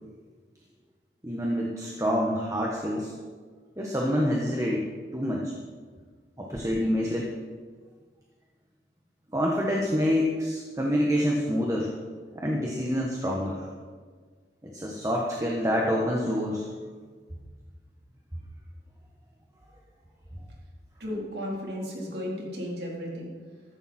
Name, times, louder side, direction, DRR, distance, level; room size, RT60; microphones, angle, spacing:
voice 1, 1.2-3.1 3.8-4.8 5.1-5.5 6.4-7.3 9.3-11.9 12.3-13.7 14.6-16.7, equal, 20° right, -2 dB, 1.4 m, -27 dB
voice 2, 21.0-23.3, equal, 65° right, -3 dB, 3.9 m, -34 dB
15.0 x 14.0 x 4.4 m, 1.5 s
head